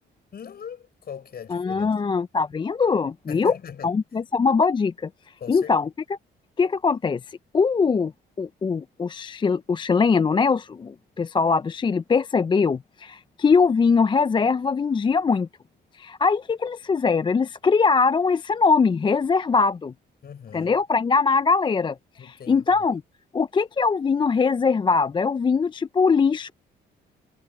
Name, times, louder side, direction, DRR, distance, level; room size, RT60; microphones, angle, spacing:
voice 1, 0.3-1.9 3.3-4.0 5.4-5.7 20.2-20.8 22.2-22.8, left 7 dB, 50° left, 5.0 m, -40 dB
voice 2, 1.5-3.6 3.8-5.1 5.5-5.9 6.6-7.2 7.5-8.1 8.4-15.5 16.0-19.9 20.5-23.0 23.3-26.5, left 5 dB, 25° left, 0.4 m, -22 dB
cardioid pair, 90°, 20 cm